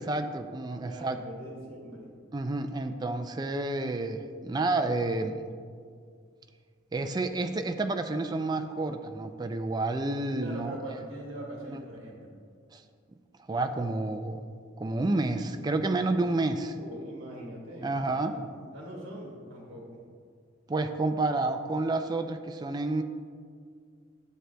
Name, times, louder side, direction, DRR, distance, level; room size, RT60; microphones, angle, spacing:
voice 1, 0.0-1.2 2.3-5.4 6.9-10.7 11.7-11.8 12.7-12.8 13.5-14.4 14.8-16.7 17.8-18.4 20.7-23.0, right 2 dB, 20° right, 7 dB, 0.3 m, -30 dB
voice 2, 0.8-2.1 10.4-12.3 16.4-18.5 18.7-20.0, right 1 dB, 60° right, -3 dB, 1.3 m, -42 dB
11.0 x 7.6 x 2.2 m, 2.1 s
head